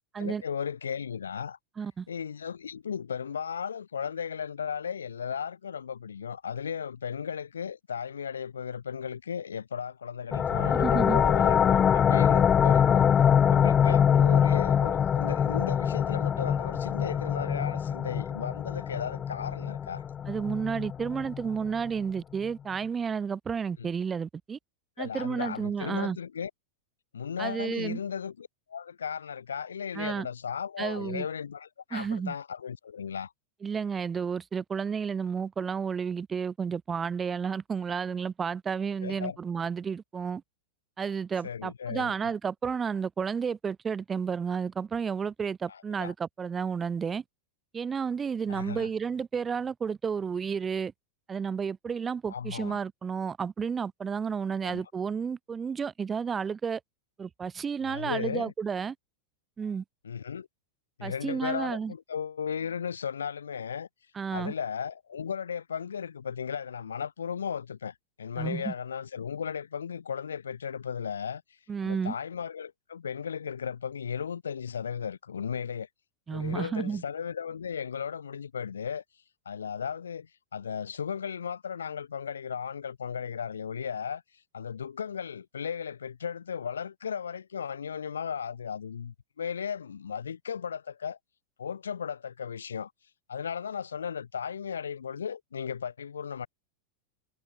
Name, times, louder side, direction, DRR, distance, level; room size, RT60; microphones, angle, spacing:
voice 1, 0.0-1.6 2.1-13.1 13.5-20.0 23.8-23.9 25.0-26.5 27.1-33.3 39.0-39.4 41.4-42.2 45.7-46.1 48.5-48.9 52.3-52.8 54.6-54.8 57.8-58.5 60.0-60.5 61.0-63.9 64.3-71.4 71.8-75.9 76.3-79.0 79.4-84.2 84.5-91.2 91.6-92.9 93.3-96.5, left 7 dB, 70° left, 3.1 m, -35 dB
sound 1, 10.3-21.7, left 8 dB, 25° left, 0.6 m, -24 dB
voice 2, 10.7-11.2 20.3-24.6 25.0-26.2 27.4-28.0 29.9-30.3 30.8-31.3 31.9-32.3 33.6-40.4 41.0-47.2 47.7-50.9 51.3-56.8 57.2-58.9 59.6-59.8 61.0-61.9 64.1-64.5 68.4-68.7 71.7-72.1 76.3-77.0, right 6 dB, 20° right, 0.7 m, -31 dB
figure-of-eight pair, 90°, 0 cm